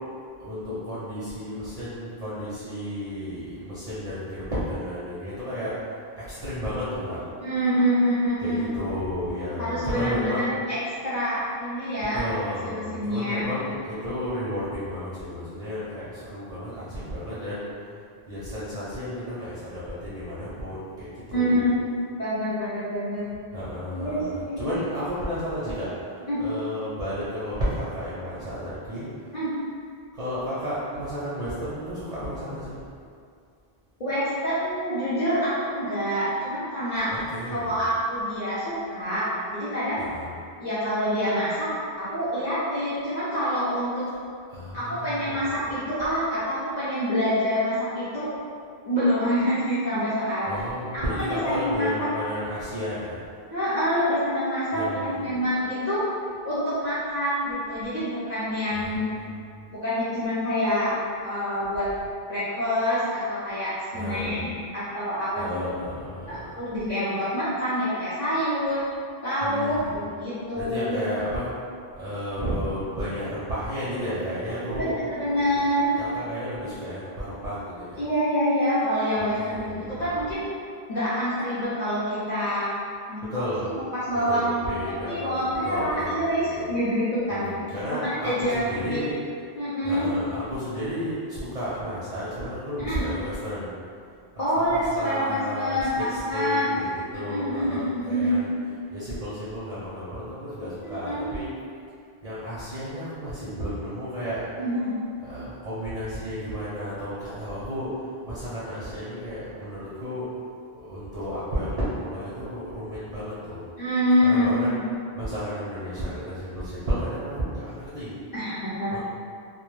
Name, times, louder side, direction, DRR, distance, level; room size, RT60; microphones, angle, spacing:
voice 1, 0.4-7.2 8.4-10.5 12.1-17.9 18.3-21.6 23.5-29.1 30.2-32.8 37.1-37.7 40.0-40.3 44.5-45.7 50.5-53.2 54.7-55.4 58.7-59.4 63.9-64.5 65.4-66.4 69.4-70.1 70.6-71.7 71.9-75.6 76.0-78.0 79.4-80.1 83.2-83.6 84.3-86.7 87.3-89.2 89.8-93.7 94.7-98.5 98.9-101.5 102.2-104.5 105.2-110.3 110.8-113.6 114.2-114.8 115.1-118.2 118.9-119.0, equal, 50° right, -10 dB, 0.5 m, -32 dB
voice 2, 7.4-8.6 9.6-10.8 11.0-12.2 12.6-13.5 21.3-21.8 22.2-23.3 23.9-24.9 26.3-26.4 29.3-29.5 34.0-37.1 37.5-39.3 39.5-40.0 40.6-41.7 42.0-44.1 44.7-48.3 48.8-50.5 50.9-52.1 53.5-56.1 56.4-59.0 59.8-60.9 61.2-61.9 62.3-65.7 66.3-68.8 69.2-71.0 74.7-75.9 77.9-80.4 80.9-82.7 83.1-83.2 83.6-87.5 88.0-88.6 88.9-89.0 89.6-90.1 92.8-93.0 94.4-96.7 97.1-98.4 100.8-101.3 104.6-105.0 113.8-114.8 118.3-119.0, equal, 50° left, -12 dB, 0.6 m, -26 dB
2.1 x 2.1 x 3.0 m, 2.3 s
omnidirectional pair, 1.0 m